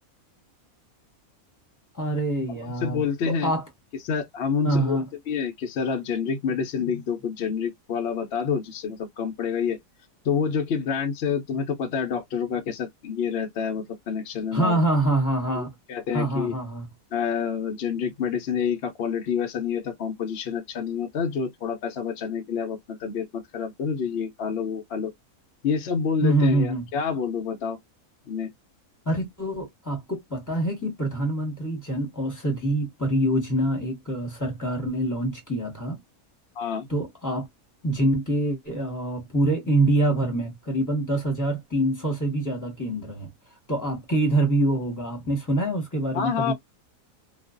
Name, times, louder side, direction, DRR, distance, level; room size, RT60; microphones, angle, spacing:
voice 1, 1.9-3.6 4.6-5.1 14.5-15.7 16.1-16.9 26.2-26.9 29.0-36.0 36.9-37.5 37.8-43.3 43.7-46.5, right 1 dB, 15° left, 0.9 m, -25 dB
voice 2, 2.8-3.5 4.0-9.8 10.2-14.8 15.5-16.5 17.1-25.1 25.6-27.8 28.3-28.5 36.6-36.9 46.1-46.5, left 6 dB, 60° left, 0.7 m, -28 dB
2.4 x 2.2 x 2.3 m
omnidirectional pair, 1.5 m